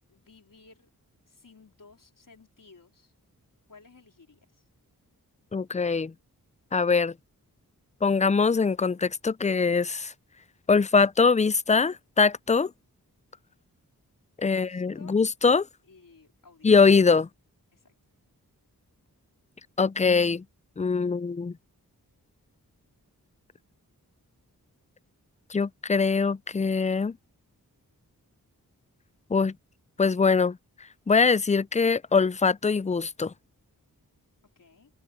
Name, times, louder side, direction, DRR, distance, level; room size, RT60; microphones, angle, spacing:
voice 1, 0.1-0.9 1.3-3.1 3.7-4.6 14.4-15.2 15.9-16.7 17.7-17.9 34.6-34.9, left 4 dB, 60° left, 4.4 m, -55 dB
voice 2, 5.5-6.1 6.7-7.1 8.0-10.1 10.7-12.7 14.4-15.7 16.6-17.3 19.8-20.4 20.8-21.5 25.5-27.2 29.3-29.5 30.0-30.6 31.1-33.3, left 4 dB, 20° left, 0.4 m, -22 dB
open air
cardioid pair, 45°, 37 cm